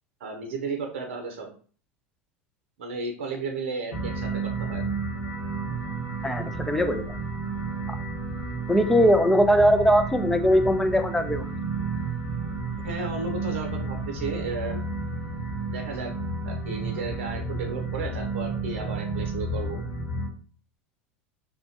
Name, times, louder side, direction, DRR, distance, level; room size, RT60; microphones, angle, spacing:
voice 1, 0.2-1.5 2.8-4.9 12.8-14.8 15.7-16.1 16.4-19.8, right 4 dB, 75° right, 3 dB, 0.7 m, -34 dB
sound 1, 3.9-20.3, right 3 dB, 80° left, 1.3 m, -31 dB
voice 2, 6.2-7.2 7.9-8.0 8.7-11.5, equal, 5° left, 7 dB, 0.3 m, -21 dB
3.0 x 2.1 x 2.6 m, 0.42 s
hypercardioid pair, 100°, 7 cm